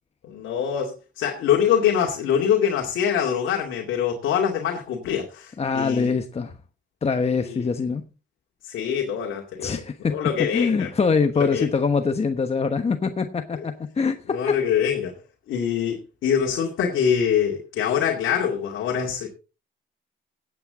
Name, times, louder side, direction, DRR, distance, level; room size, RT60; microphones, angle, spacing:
voice 1, 0.2-6.1 7.5-7.7 8.6-9.7 10.1-10.9 11.5-11.7 14.3-15.1 15.5-19.3, left 8 dB, 80° left, 2.4 m, -24 dB
voice 2, 5.6-6.5 7.0-8.0 9.6-14.6, left 5 dB, 30° left, 1.1 m, -24 dB
16.5 x 8.7 x 3.8 m
cardioid pair, 90°, 20 cm